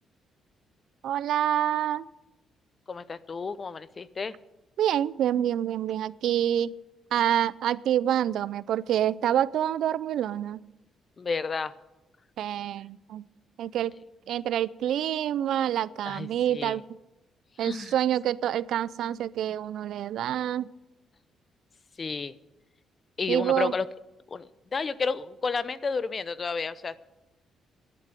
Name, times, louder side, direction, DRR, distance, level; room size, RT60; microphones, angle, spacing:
voice 1, 1.0-2.0 4.8-6.7 7.1-10.6 12.4-13.2 13.6-13.9 14.3-16.8 17.6-20.7 23.3-23.7, right 11 dB, 75° right, 19 dB, 0.4 m, -27 dB
voice 2, 2.9-4.3 11.2-11.7 16.1-16.8 17.6-17.9 22.0-22.3 23.2-23.8 24.3-24.5 24.7-27.0, left 4 dB, 35° left, 17 dB, 0.6 m, -31 dB
11.0 x 8.5 x 9.9 m, 1.0 s
cardioid pair, 90°, 0 cm